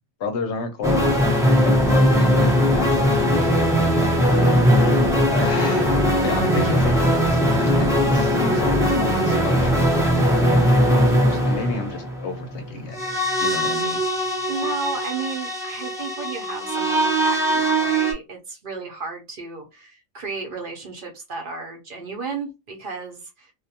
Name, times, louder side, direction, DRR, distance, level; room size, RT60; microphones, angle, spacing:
voice 1, 0.2-1.4 1.6-3.5 4.0-4.6 5.3-6.0 6.2-10.3 10.9-13.0 13.4-14.0, left 3 dB, 65° left, 0.8 m, -31 dB
sound 1, 0.8-18.1, equal, 5° right, 0.5 m, -20 dB
voice 2, 3.9-4.6 14.5-23.5, right 4 dB, 50° right, 0.8 m, -33 dB
2.4 x 2.2 x 2.7 m
omnidirectional pair, 1.3 m